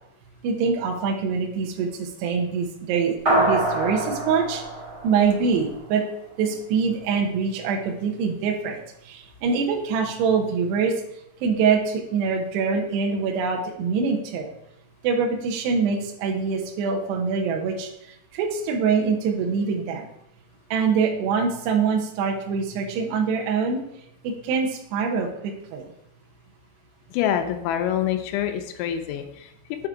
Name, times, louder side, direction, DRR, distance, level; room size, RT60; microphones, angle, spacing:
voice 1, 0.4-4.6 5.0-6.0 6.4-10.9 11.4-14.5 15.0-17.9 18.3-20.1 20.7-23.8 24.2-25.8, right 5 dB, 80° right, 1 dB, 2.4 m, -24 dB
sound 1, 3.3-6.0, right 1 dB, 65° right, 0.9 m, -25 dB
voice 2, 27.1-29.9, left 10 dB, 85° left, 7 dB, 3.3 m, -26 dB
7.9 x 3.8 x 4.6 m, 0.76 s
omnidirectional pair, 5.9 m